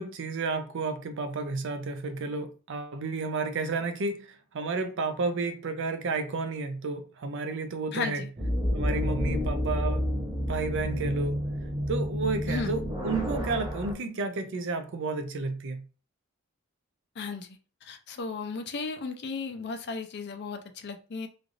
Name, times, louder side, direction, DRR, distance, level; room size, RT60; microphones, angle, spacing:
voice 1, 0.0-8.3 8.7-10.1 10.5-11.4 11.9-15.9, right 3 dB, 55° right, 0.4 m, -32 dB
voice 2, 7.9-8.3 12.5-12.8 17.2-21.3, left 4 dB, 50° left, 0.4 m, -35 dB
sound 1, 8.4-13.9, equal, 20° right, 0.7 m, -29 dB
3.2 x 2.4 x 2.5 m
head